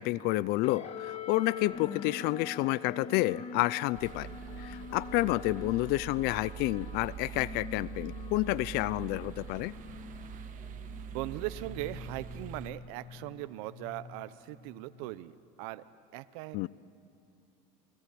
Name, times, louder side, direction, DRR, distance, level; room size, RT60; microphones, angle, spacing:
voice 1, 0.0-4.3 4.6-9.7 16.5-16.7, left 18 dB, 65° left, 20 dB, 0.5 m, -30 dB
sound 1, 0.6-15.4, left 6 dB, 35° left, 1.7 m, -45 dB
sound 2, 3.9-12.7, right 8 dB, 50° right, 1.3 m, -44 dB
voice 2, 11.1-15.9 16.1-16.7, right 17 dB, 75° right, 14 dB, 0.8 m, -39 dB
28.0 x 21.0 x 8.6 m, 2.7 s
supercardioid pair, 105°, 17 cm